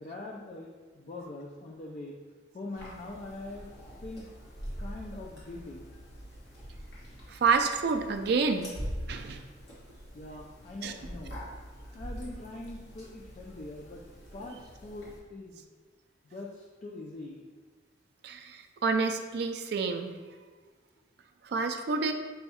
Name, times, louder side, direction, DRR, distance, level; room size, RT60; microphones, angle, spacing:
voice 1, 0.0-2.2 2.5-3.7 4.0-4.3 4.8-5.8 10.1-11.4 11.9-14.0 14.3-15.7 16.2-17.5, left 2 dB, 40° left, -2 dB, 0.4 m, -43 dB
sound 1, 2.8-15.2, equal, 55° left, 1.4 m, -44 dB
voice 2, 7.3-8.8 9.1-9.4 10.8-11.0 18.2-20.1 21.4-22.1, right 4 dB, 55° right, 6 dB, 0.3 m, -28 dB
5.5 x 2.3 x 4.1 m, 1.4 s
head